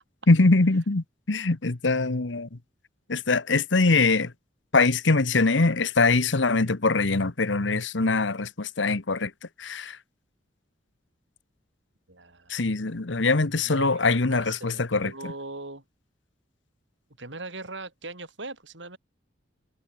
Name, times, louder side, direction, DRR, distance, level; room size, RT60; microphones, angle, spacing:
voice 1, 0.3-2.6 3.1-4.3 4.7-9.3 9.6-10.0 12.5-15.3, left 3 dB, 70° left, 1.2 m, -23 dB
voice 2, 12.1-12.6 13.6-15.8 17.2-19.0, right 2 dB, 70° right, 7.0 m, -40 dB
head